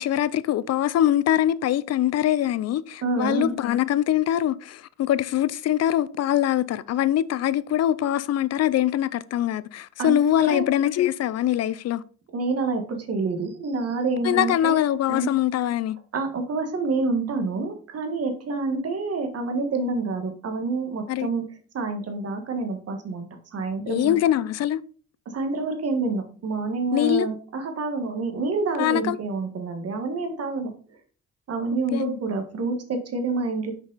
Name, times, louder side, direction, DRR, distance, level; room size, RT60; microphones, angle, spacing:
voice 1, 0.0-12.0 14.2-16.0 21.1-21.3 23.9-24.8 26.9-27.3 28.8-29.2 31.9-32.1, left 12 dB, 55° left, 0.5 m, -23 dB
voice 2, 3.0-3.5 10.0-10.7 12.3-14.8 15.1-15.3 16.1-21.4 21.7-24.2 25.2-30.7 31.5-33.7, right 3 dB, 55° right, 1.6 m, -28 dB
6.2 x 5.2 x 4.0 m
cardioid pair, 90°, 30 cm